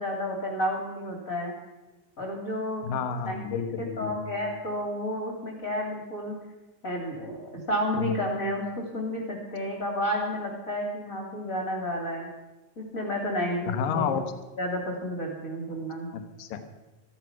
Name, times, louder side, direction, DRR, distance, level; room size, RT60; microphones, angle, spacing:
voice 1, 0.0-1.5 2.2-3.0 3.2-6.4 6.8-12.3 12.8-14.2 14.6-16.1, equal, 25° left, 0 dB, 2.8 m, -31 dB
voice 2, 2.8-4.2 7.9-8.2 13.7-14.3 16.1-16.7, left 7 dB, 75° left, 9 dB, 2.7 m, -30 dB
14.0 x 13.5 x 5.9 m, 1.1 s
omnidirectional pair, 4.0 m